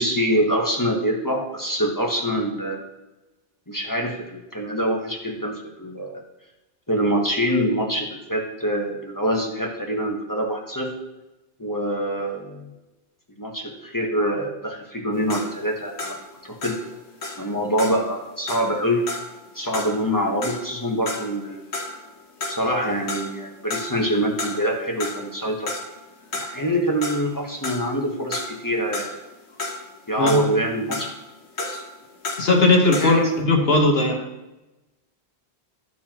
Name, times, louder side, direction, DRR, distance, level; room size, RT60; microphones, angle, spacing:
voice 1, 0.0-2.9 3.7-6.2 6.9-10.9 11.6-12.7 13.4-16.8 17.4-19.0 19.5-21.6 22.5-25.7 26.3-29.1 30.1-31.1 31.6-31.8 32.9-33.3, equal, 20° left, -1 dB, 1.1 m, -25 dB
sound 1, 15.1-22.1 22.4-23.4 23.7-24.7 25.0-33.4, left 2 dB, 80° left, 1.6 m, -33 dB
voice 2, 32.4-34.2, left 2 dB, 60° left, 0 dB, 1.5 m, -18 dB
13.5 x 4.6 x 2.9 m, 1.0 s
omnidirectional pair, 1.1 m